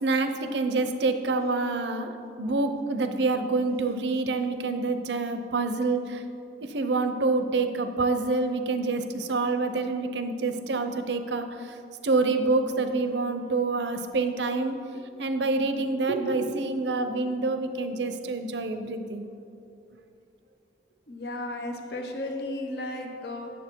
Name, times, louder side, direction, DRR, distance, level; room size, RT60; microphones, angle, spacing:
voice 1, 0.0-6.2 6.6-11.8 12.0-14.8 15.2-19.3, right 3 dB, 75° right, 9 dB, 0.6 m, -27 dB
voice 2, 16.0-16.7 18.8-19.0 21.1-23.5, equal, 60° left, 3 dB, 1.0 m, -34 dB
9.1 x 7.1 x 4.5 m, 2.6 s
head